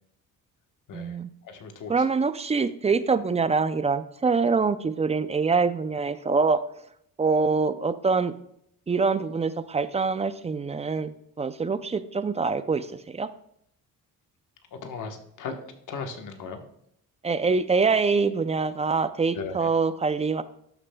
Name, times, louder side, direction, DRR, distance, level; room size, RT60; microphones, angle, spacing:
voice 1, 0.9-1.3 1.9-6.6 7.2-8.3 8.9-13.3 17.2-20.4, right 4 dB, 20° right, 13 dB, 0.4 m, -25 dB
voice 2, 1.5-1.9 14.8-15.6 15.9-16.6 19.3-19.7, left 5 dB, 60° left, 5 dB, 1.2 m, -36 dB
12.0 x 6.6 x 2.2 m, 0.71 s
cardioid pair, 95°, 35 cm